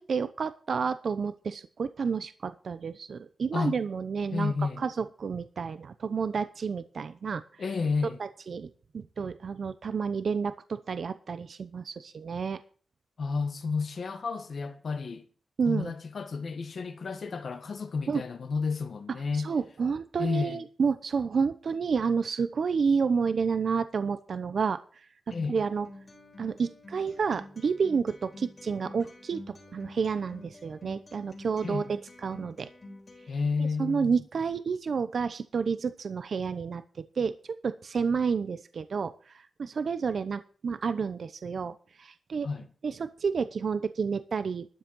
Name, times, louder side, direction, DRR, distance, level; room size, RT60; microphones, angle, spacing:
voice 1, 0.0-7.4 8.2-8.7 8.9-12.6 15.6-15.9 18.1-18.2 19.4-24.8 25.5-25.9 26.4-32.7 33.8-39.1 39.6-42.5 42.8-44.7, right 5 dB, 50° right, 0.8 m, -30 dB
voice 2, 4.3-4.8 7.6-8.2 13.2-15.2 15.6-19.5 20.2-20.6 25.3-25.6 31.6-31.8 33.3-34.1 42.4-42.7, left 4 dB, 45° left, 1.6 m, -31 dB
Acoustic guitar, 25.3-33.3, left 2 dB, 25° left, 3.8 m, -49 dB
12.5 x 6.5 x 9.0 m
wide cardioid pair, 175°, 0 cm